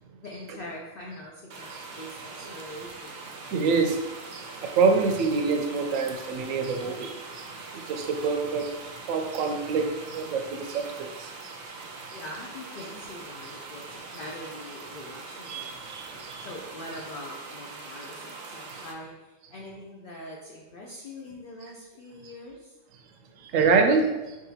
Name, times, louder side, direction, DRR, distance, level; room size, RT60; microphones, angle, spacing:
voice 1, 0.2-3.2 12.1-15.7 16.4-22.8, left 1 dB, 55° left, -1 dB, 0.6 m, -43 dB
sound 1, 1.5-18.9, right 3 dB, 60° right, 0.7 m, -42 dB
voice 2, 3.5-4.0 4.3-7.5 7.7-8.7 9.1-11.5 12.1-12.2 15.5-16.5 18.7-18.8 23.4-24.4, right 4 dB, 80° right, 5 dB, 1.0 m, -26 dB
4.6 x 3.8 x 2.7 m, 1.1 s
omnidirectional pair, 1.4 m